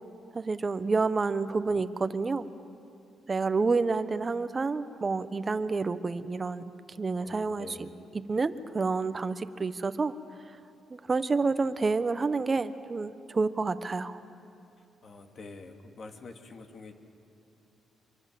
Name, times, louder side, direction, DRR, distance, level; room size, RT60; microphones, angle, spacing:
voice 1, 0.3-2.4 3.3-6.6 7.0-10.1 10.9-14.2, right 4 dB, 30° right, 12 dB, 1.1 m, -29 dB
voice 2, 7.2-8.0 15.0-16.9, left 3 dB, 45° left, 5 dB, 2.5 m, -47 dB
26.0 x 24.0 x 7.7 m, 2.6 s
cardioid pair, 90°, 0 cm